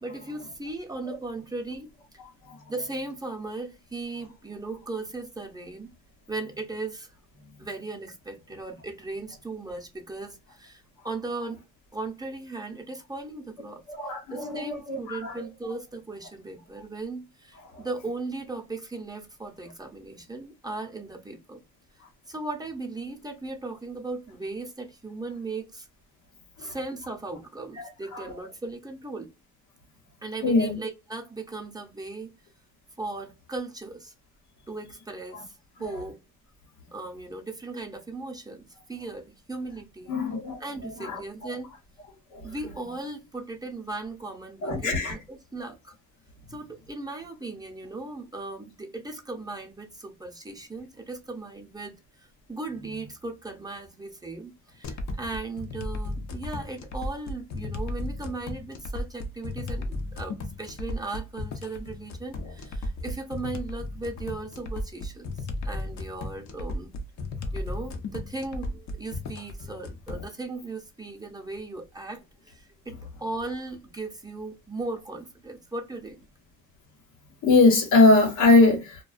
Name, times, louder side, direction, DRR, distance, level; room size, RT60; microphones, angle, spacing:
voice 1, 0.0-2.2 2.7-5.9 6.3-7.1 7.6-11.6 11.9-13.8 14.3-21.6 22.3-25.9 26.6-29.3 30.2-32.3 33.0-34.1 34.7-36.2 36.9-40.1 40.6-41.7 42.4-45.9 46.5-66.9 67.5-76.2, right 3 dB, 15° right, 0.6 m, -37 dB
voice 2, 13.9-15.5 17.7-17.8 26.6-26.8 27.8-28.3 30.4-30.8 35.3-35.4 40.1-40.6 41.0-41.5 42.3-42.5 44.6-45.1 77.4-79.0, left 3 dB, 90° left, 1.0 m, -22 dB
sound 1, 54.8-70.3, left 2 dB, 65° left, 0.6 m, -35 dB
2.3 x 2.2 x 2.4 m
cardioid pair, 90°, 30 cm